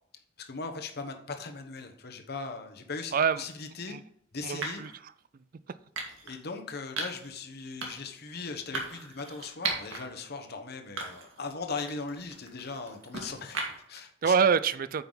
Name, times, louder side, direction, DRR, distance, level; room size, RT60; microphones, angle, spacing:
voice 1, 0.4-4.0 4.3-4.8 6.2-14.3, left 4 dB, 55° left, 5 dB, 1.1 m, -39 dB
voice 2, 3.1-3.4 3.9-4.0 4.4-5.1 14.2-15.0, right 6 dB, 45° right, 16 dB, 0.4 m, -26 dB
sound 1, 3.3-3.5 4.6-4.9 5.9-6.4 7.0-7.3 7.8-8.1 8.7-10.0 10.4-10.5 11.0-11.4 11.8-14.0, right 3 dB, 85° right, 1.8 m, -37 dB
8.9 x 5.7 x 4.0 m, 0.68 s
head